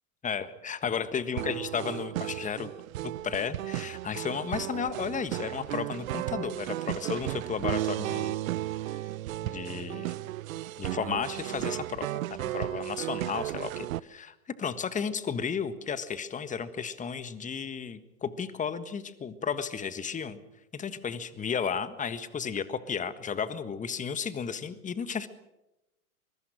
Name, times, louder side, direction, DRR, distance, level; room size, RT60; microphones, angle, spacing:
voice 1, 0.2-2.7 3.0-8.4 9.4-10.1 10.8-20.4 20.7-25.3, left 6 dB, 15° left, 12 dB, 1.6 m, -33 dB
sound 1, 1.4-14.0, right 15 dB, 65° right, 0.7 m, -34 dB
24.0 x 22.0 x 6.4 m, 0.94 s
hypercardioid pair, 105°, 46 cm